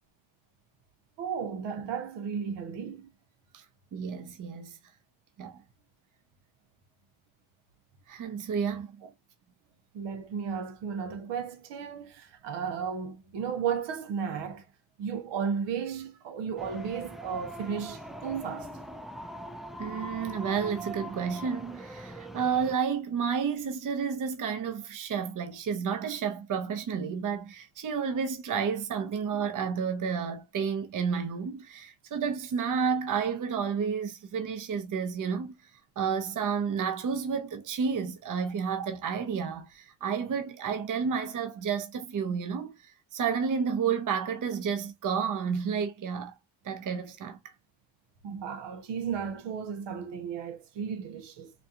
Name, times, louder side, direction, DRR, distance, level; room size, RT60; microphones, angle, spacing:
voice 1, 1.2-3.1 9.0-9.1 9.9-14.7 15.0-18.7 29.0-29.1 48.2-51.5, right 7 dB, 75° right, 0.9 m, -34 dB
voice 2, 3.9-4.8 5.4-5.6 8.1-8.9 19.8-46.3 46.6-47.5, right 6 dB, 45° right, 0.9 m, -31 dB
sound 1, 16.6-22.8, right 1 dB, ahead, 0.4 m, -41 dB
4.2 x 2.4 x 2.7 m
cardioid pair, 85°, 42 cm